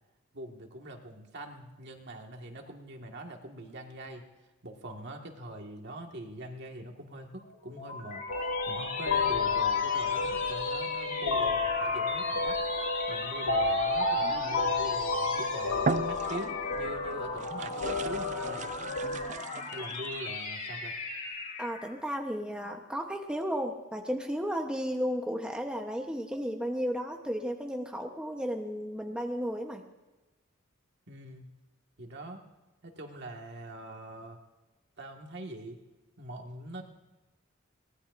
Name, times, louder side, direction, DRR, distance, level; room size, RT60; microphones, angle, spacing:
voice 1, 0.3-4.2 4.6-12.6 13.1-18.8 19.7-20.9 31.1-31.5 32.0-32.4 32.8-34.4 35.0-35.8 36.2-36.8, right 1 dB, 55° right, 2 dB, 1.9 m, -43 dB
sound 1, 7.4-22.0, left 4 dB, 40° left, 2.4 m, -39 dB
sound 2, 8.3-19.3, left 3 dB, 90° left, 1.0 m, -30 dB
sound 3, 15.1-15.3 15.8-16.8 17.4-20.1, right 4 dB, 35° right, 0.4 m, -36 dB
voice 2, 21.6-29.8, equal, 5° right, 2 dB, 1.0 m, -34 dB
23.0 x 19.0 x 2.6 m, 1.1 s
head